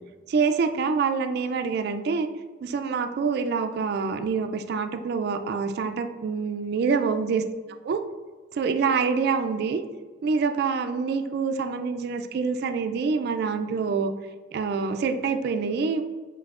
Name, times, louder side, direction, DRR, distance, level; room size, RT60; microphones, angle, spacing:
voice 1, 0.3-2.3 2.6-7.4 7.8-8.0 8.5-9.8 10.2-14.1 14.5-16.0, right 5 dB, 60° right, 7 dB, 0.3 m, -26 dB
7.2 x 2.7 x 2.4 m, 1.4 s
head